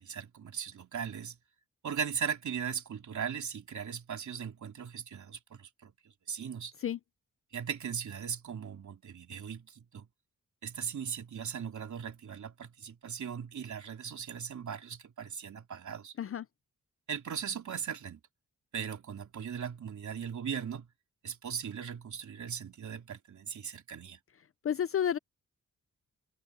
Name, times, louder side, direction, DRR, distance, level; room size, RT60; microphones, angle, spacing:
voice 1, 0.0-1.4 1.8-5.9 6.3-6.7 7.5-10.1 10.6-16.2 17.1-18.2 18.7-20.9 21.2-24.2, right 7 dB, 70° right, 3.7 m, -38 dB
voice 2, 24.6-25.2, left 9 dB, 45° left, 0.5 m, -30 dB
wide cardioid pair, 125°, 31 cm